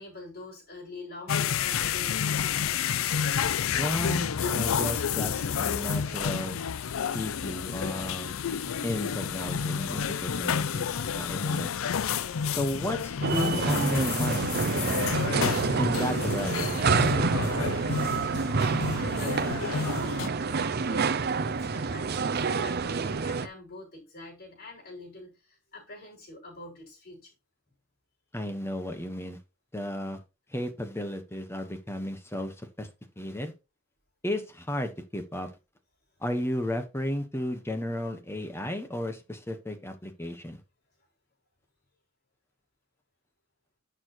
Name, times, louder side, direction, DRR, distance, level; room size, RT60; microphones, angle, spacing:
voice 1, 0.0-2.6 18.6-27.3, left 2 dB, 50° left, 5.8 m, -45 dB
sound 1, 1.3-20.3, left 7 dB, 90° left, 0.5 m, -30 dB
voice 2, 3.7-6.6 7.1-8.4 8.8-11.7 12.5-15.2 15.8-16.7 17.1-17.5 28.3-29.4 29.7-30.2 30.5-32.9 33.2-33.5 34.2-35.5 36.2-40.6, left 1 dB, 10° left, 1.3 m, -33 dB
sound 2, 13.2-23.5, right 4 dB, 50° right, 0.7 m, -28 dB
11.0 x 6.6 x 3.1 m
head